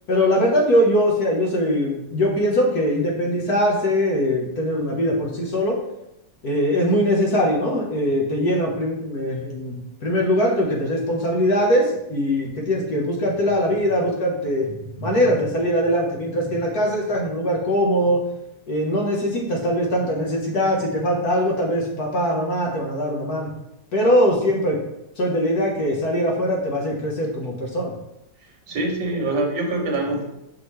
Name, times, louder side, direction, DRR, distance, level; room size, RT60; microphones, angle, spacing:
voice 1, 0.1-5.8 6.4-14.7 15.0-18.3 18.7-23.5 23.9-24.8 25.2-27.9, equal, 60° left, -1 dB, 1.7 m, -21 dB
voice 2, 14.6-15.6 16.2-16.7 17.1-17.2 18.0-18.2 28.7-30.2, right 2 dB, 85° right, 1 dB, 1.8 m, -27 dB
5.8 x 5.7 x 3.2 m, 0.84 s
omnidirectional pair, 1.9 m